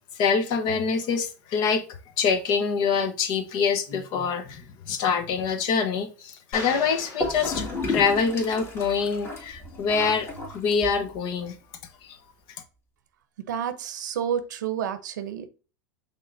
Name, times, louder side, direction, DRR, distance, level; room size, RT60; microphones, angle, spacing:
voice 1, 0.2-1.8 2.2-10.3 10.5-11.5 12.0-12.2, left 5 dB, 50° left, 8 dB, 1.0 m, -25 dB
sound 1, 6.5-8.3, left 3 dB, 65° left, 2.2 m, -39 dB
Gurgling / Toilet flush, 7.2-11.2, left 2 dB, 25° left, 2.0 m, -32 dB
voice 2, 13.5-15.5, right 8 dB, 85° right, 11 dB, 0.7 m, -30 dB
5.4 x 3.7 x 2.6 m, 0.35 s
supercardioid pair, 120°, 10 cm